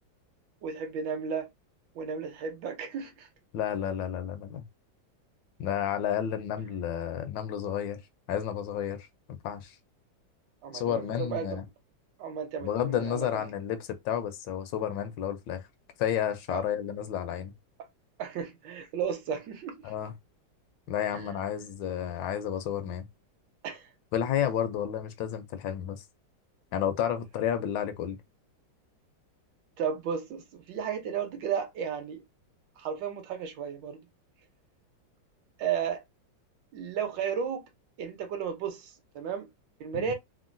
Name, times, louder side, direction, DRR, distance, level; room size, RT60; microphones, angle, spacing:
voice 1, 0.6-1.5 1.9-3.3 10.6-11.6 12.2-13.3 16.5-16.6 18.2-19.9 21.1-21.3 23.6-23.9 29.8-32.2 32.8-34.0 35.6-36.0 36.7-37.6 38.0-39.5 39.8-40.1, right 7 dB, 75° right, 1.4 m, -34 dB
voice 2, 3.5-4.6 5.6-8.0 8.3-9.1 9.4-9.8 10.7-11.6 12.6-15.6 16.0-17.5 19.8-20.1 20.9-23.1 24.1-26.0 26.7-28.2 39.9-40.1, left 9 dB, 80° left, 1.2 m, -31 dB
3.6 x 2.0 x 2.5 m
omnidirectional pair, 2.1 m